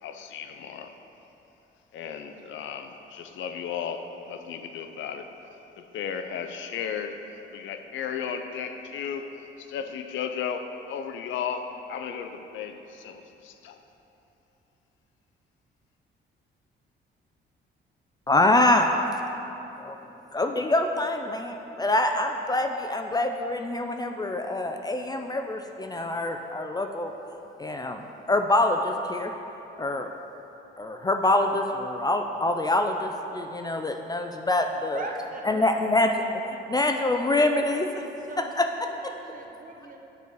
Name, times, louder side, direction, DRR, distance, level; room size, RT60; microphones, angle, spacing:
voice 1, 0.0-1.0 1.9-5.3 5.8-7.2 7.5-13.8, left 7 dB, 75° left, 7 dB, 0.5 m, -35 dB
voice 2, 18.3-19.0 19.8-20.0 20.3-27.1 27.6-29.3 29.8-30.1 30.8-35.0 35.5-36.1 36.7-38.0 38.6-38.7 39.0-39.1, left 2 dB, 20° left, 4 dB, 0.3 m, -25 dB
voice 3, 34.9-36.0 36.9-37.3 38.2-38.5 38.9-40.0, right 3 dB, 45° right, 1 dB, 0.8 m, -40 dB
8.3 x 4.0 x 4.6 m, 3.0 s
cardioid pair, 90°, 20 cm